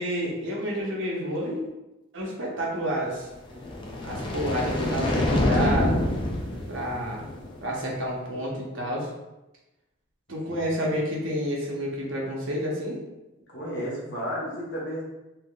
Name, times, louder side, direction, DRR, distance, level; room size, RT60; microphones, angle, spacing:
voice 1, 0.0-1.6 2.1-3.3 4.0-5.9 6.7-7.2 7.6-9.1 10.3-13.0, equal, 65° right, -3 dB, 0.8 m, -29 dB
sound 1, 3.5-7.7, left 1 dB, 25° left, 0.4 m, -27 dB
voice 2, 10.5-10.9 13.5-15.0, equal, 55° left, -6 dB, 0.8 m, -33 dB
3.4 x 2.7 x 2.3 m, 0.99 s
head